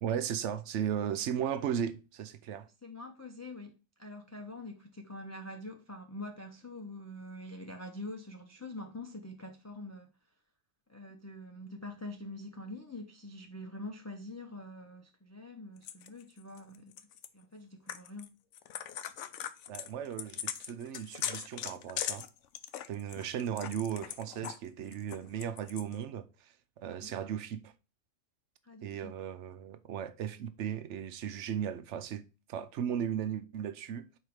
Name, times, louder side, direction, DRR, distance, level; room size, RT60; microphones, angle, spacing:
voice 1, 0.0-2.7 19.7-22.3 22.9-27.7 28.8-32.2 32.5-34.1, right 9 dB, 70° right, 1.0 m, -36 dB
voice 2, 2.8-10.1 10.9-16.9 17.3-18.3 27.0-27.1 28.6-29.1, left 1 dB, 20° left, 0.5 m, -45 dB
sound 1, 15.8-17.3 17.9-18.3 18.5-24.6 24.9-25.9, left 10 dB, 75° left, 0.9 m, -39 dB
4.7 x 4.6 x 4.9 m
omnidirectional pair, 1.3 m